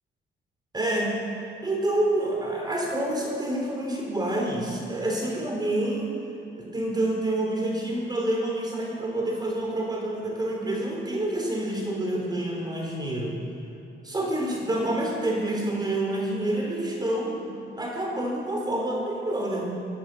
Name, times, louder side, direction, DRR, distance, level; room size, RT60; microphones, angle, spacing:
voice 1, 0.7-1.2 1.6-6.1 6.6-13.4 14.0-19.7, right 1 dB, 20° right, -1 dB, 3.4 m, -28 dB
16.0 x 11.0 x 6.6 m, 2.8 s
cardioid pair, 90°, 20 cm